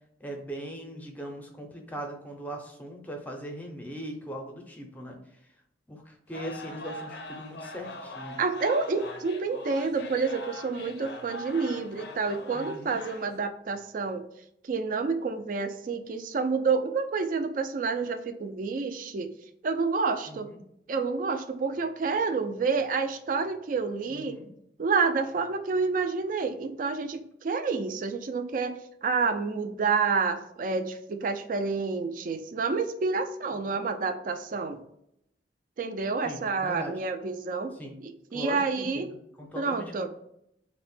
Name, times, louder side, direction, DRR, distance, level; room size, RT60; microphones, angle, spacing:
voice 1, 0.2-5.2 5.9-8.4 12.5-13.0 20.3-20.6 24.1-24.5 33.7-33.8 36.2-37.0 37.7-38.0 38.3-40.1, right 1 dB, 10° left, 2 dB, 0.5 m, -40 dB
sound 1, 6.3-13.4, left 1 dB, 65° left, 0.4 m, -42 dB
voice 2, 8.4-14.2 14.6-19.3 19.6-20.5 20.9-24.4 24.8-34.8 35.8-37.7 38.0-39.1 39.6-40.1, right 4 dB, 45° right, 7 dB, 0.3 m, -29 dB
3.4 x 2.1 x 4.2 m, 0.76 s
head